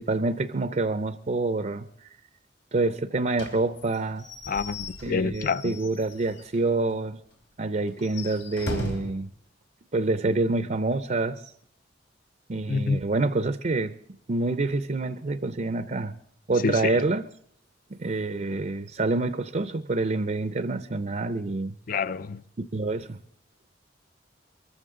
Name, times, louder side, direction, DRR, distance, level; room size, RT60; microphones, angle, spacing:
voice 1, 0.0-1.9 2.7-4.3 5.0-7.2 7.6-9.3 9.9-11.5 12.5-13.9 14.3-16.1 16.5-17.2 18.0-21.7 22.7-23.2, right 2 dB, 40° right, 0.5 m, -27 dB
Slam / Squeak / Wood, 3.3-6.6 6.9-7.0 7.3-7.4 7.9-9.2, equal, 85° left, 3.4 m, -37 dB
voice 2, 4.5-5.8 12.7-13.0 16.6-17.0 21.9-22.4, left 4 dB, 50° left, 0.5 m, -27 dB
23.0 x 14.5 x 3.7 m
head